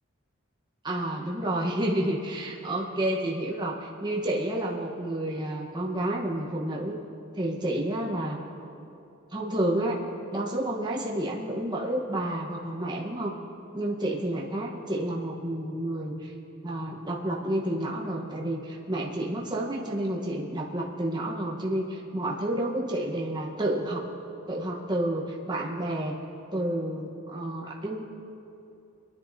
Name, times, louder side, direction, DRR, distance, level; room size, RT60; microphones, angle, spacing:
voice 1, 0.8-7.0 7.3-8.4 9.3-10.0 10.3-13.3 13.7-16.3 16.6-24.0 24.5-26.2 26.5-28.0, right 1 dB, 20° right, -2 dB, 1.1 m, -30 dB
26.0 x 10.5 x 2.7 m, 2.7 s
head